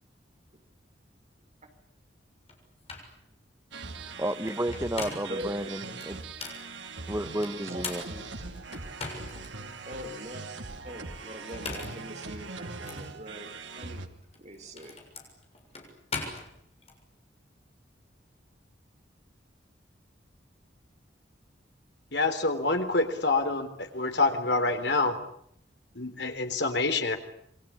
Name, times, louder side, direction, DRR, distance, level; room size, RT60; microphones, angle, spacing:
sound 1, 2.5-2.6 2.9-3.1 4.5-5.4 6.0-6.6 7.4-9.5 10.0-10.1 11.4-12.1 12.8-13.0 14.2-17.0, left 4 dB, 35° left, 6.9 m, -39 dB
sound 2, 3.7-14.1, right 3 dB, 85° right, 2.4 m, -41 dB
voice 1, 4.1-6.2 7.1-8.0, right 1 dB, 15° right, 10 dB, 1.1 m, -32 dB
voice 2, 5.3-6.0 7.7-8.3 8.5-8.6 9.8-10.4 10.8-15.1, equal, 40° right, 5 dB, 4.6 m, -43 dB
voice 3, 22.1-25.2 26.0-27.2, left 3 dB, 70° left, 7 dB, 3.7 m, -27 dB
28.0 x 23.5 x 8.7 m, 0.70 s
head